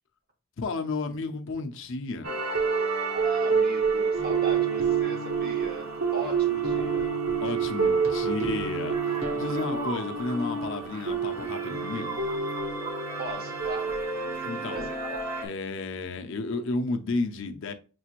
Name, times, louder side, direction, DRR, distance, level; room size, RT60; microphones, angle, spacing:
voice 1, 0.6-2.4 6.2-6.7 7.4-12.2 14.4-14.9 15.4-17.7, left 3 dB, 60° left, 0.6 m, -32 dB
sound 1, 2.2-15.5, right 5 dB, 75° right, 1.0 m, -28 dB
voice 2, 3.1-7.1 8.2-8.4 13.2-14.0 14.4-15.0, right 3 dB, 45° right, 1.0 m, -38 dB
sound 2, 8.9-14.5 14.8-15.5, right 4 dB, 30° right, 0.5 m, -42 dB
6.1 x 3.0 x 2.4 m
head